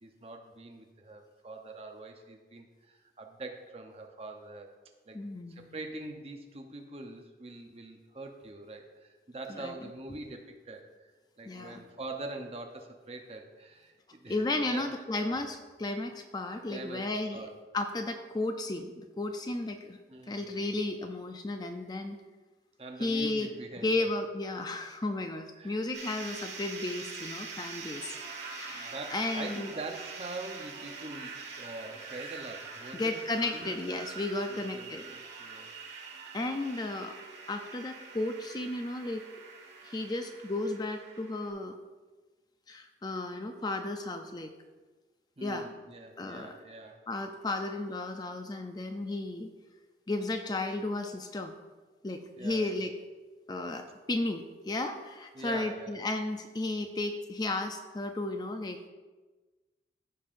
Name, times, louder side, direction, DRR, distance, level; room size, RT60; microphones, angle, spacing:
voice 1, 0.0-4.7 5.1-5.2 5.5-11.1 11.4-14.4 14.7-14.9 16.7-17.6 20.1-20.7 22.8-24.1 25.6-25.9 27.5-27.9 28.6-33.2 33.5-33.8 34.5-35.7 36.5-36.7 45.4-47.1 52.4-52.7 55.3-56.0, right 2 dB, 35° right, 3 dB, 0.8 m, -44 dB
voice 2, 5.1-5.7 9.6-9.7 11.5-11.8 14.3-17.5 17.7-20.0 20.3-22.2 23.0-23.5 23.8-28.1 28.4-29.7 32.9-35.1 36.3-37.1 37.5-39.2 39.8-41.7 42.7-44.5 45.4-45.7 46.2-46.5 47.1-49.5 50.1-51.5 52.0-52.9 53.5-58.9, left 2 dB, 20° left, 6 dB, 0.4 m, -34 dB
sound 1, 25.9-41.5, right 4 dB, 80° right, 1.4 m, -44 dB
14.5 x 5.5 x 2.6 m, 1.3 s
head